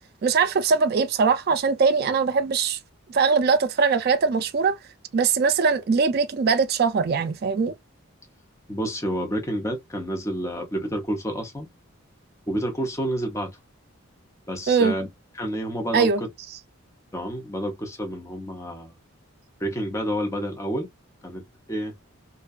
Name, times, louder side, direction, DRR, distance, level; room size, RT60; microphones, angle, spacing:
voice 1, 0.2-2.8 3.1-4.8 5.1-7.7 14.7-14.9 15.9-16.2, right 5 dB, 45° right, 0.3 m, -21 dB
voice 2, 8.7-11.7 12.5-13.6 14.5-15.1 15.3-16.3 17.1-19.0 19.6-20.9 21.2-21.9, equal, 15° left, 0.5 m, -29 dB
2.5 x 2.2 x 2.3 m
head